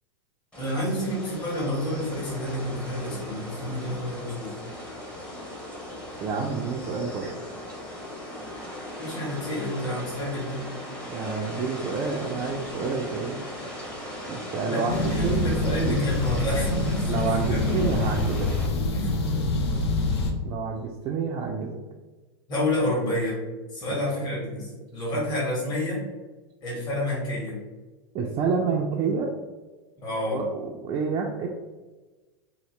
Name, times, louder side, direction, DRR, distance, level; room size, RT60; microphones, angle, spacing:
sound 1, 0.5-18.7, left 1 dB, 10° left, 0.8 m, -38 dB
voice 1, 0.6-4.5 9.0-10.6 14.7-17.0 17.5-17.8 18.9-19.4 22.5-23.4 23.7-26.0 26.6-27.6 30.0-30.4, left 1 dB, 30° left, -6 dB, 1.5 m, -29 dB
voice 2, 6.2-7.3 11.1-13.4 14.3-16.0 17.1-18.5 20.4-21.8 23.9-24.0 28.1-29.3 30.3-31.5, right 5 dB, 35° right, 0 dB, 0.4 m, -28 dB
sound 2, 14.9-20.3, left 2 dB, 80° left, 0.6 m, -26 dB
2.8 x 2.5 x 3.1 m, 1.2 s
hypercardioid pair, 110°, 14 cm